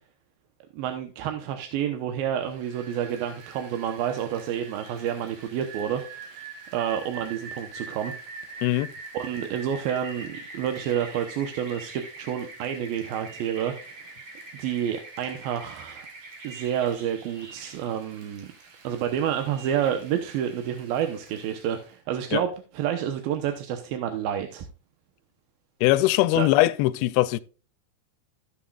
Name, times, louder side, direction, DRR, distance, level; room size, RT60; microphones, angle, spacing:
voice 1, 0.7-6.4 6.7-8.2 8.5-8.7 9.1-14.1 14.5-16.1 16.4-18.5 18.8-24.7 26.4-26.5, right 9 dB, 75° right, 2.6 m, -29 dB
Rain, 2.4-21.9, right 3 dB, 55° right, 3.1 m, -44 dB
voice 2, 8.6-8.9 22.3-22.4 25.8-27.4, left 16 dB, 85° left, 2.4 m, -21 dB
16.0 x 7.2 x 2.4 m
omnidirectional pair, 4.5 m